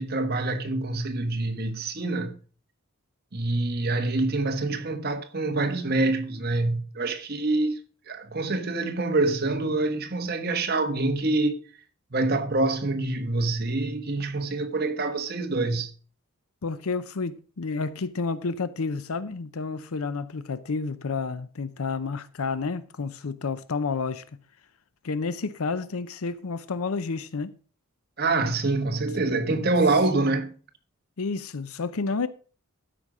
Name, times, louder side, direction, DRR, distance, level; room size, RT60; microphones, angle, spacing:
voice 1, 0.0-2.3 3.3-7.8 8.1-11.6 12.1-15.9 28.2-30.5, right 2 dB, 45° right, 1.1 m, -26 dB
voice 2, 16.6-24.2 25.0-27.5 31.2-32.3, left 4 dB, 75° left, 0.6 m, -30 dB
12.5 x 5.1 x 6.0 m
head